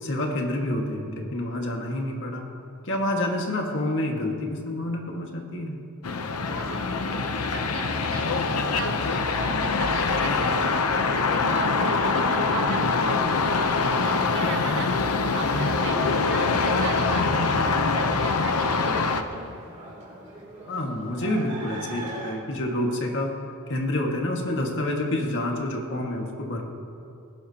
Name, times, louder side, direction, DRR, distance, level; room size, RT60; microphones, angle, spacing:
voice 1, 0.0-2.4 2.8-5.8 14.4-14.8 20.7-23.3 23.7-26.6, left 1 dB, 55° left, 1 dB, 1.9 m, -28 dB
sound 1, 6.0-19.2, left 4 dB, 80° left, 0.8 m, -24 dB
sound 2, 6.4-22.3, right 1 dB, 30° right, 3.1 m, -44 dB
voice 2, 6.5-14.9 15.2-17.6 17.9-19.6, right 3 dB, 60° right, 4 dB, 1.3 m, -38 dB
19.5 x 17.0 x 2.9 m, 2.6 s
head